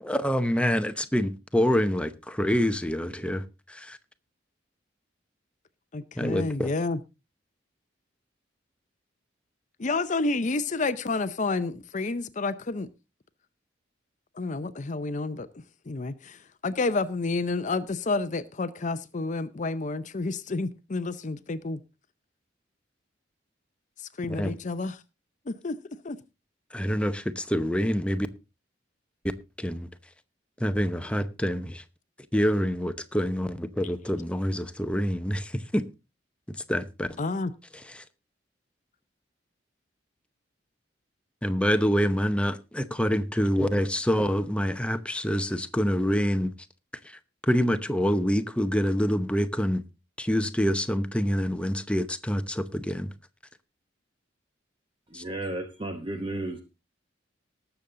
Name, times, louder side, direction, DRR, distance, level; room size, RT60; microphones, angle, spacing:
voice 1, 0.0-4.0 6.2-6.7 24.3-24.5 26.7-28.3 29.6-29.9 30.6-31.8 32.3-35.8 36.5-37.2 37.9-38.0 41.4-46.5 47.0-49.8 50.2-53.1 55.1-55.2, equal, 5° left, 0.8 m, -26 dB
voice 2, 5.9-7.0 9.8-12.9 14.4-15.5 15.9-21.8 24.0-25.0 25.5-25.8 26.0-26.2 37.2-37.5, left 3 dB, 40° left, 0.6 m, -30 dB
voice 3, 55.1-56.6, right 2 dB, 25° right, 1.0 m, -33 dB
19.0 x 7.1 x 3.8 m
head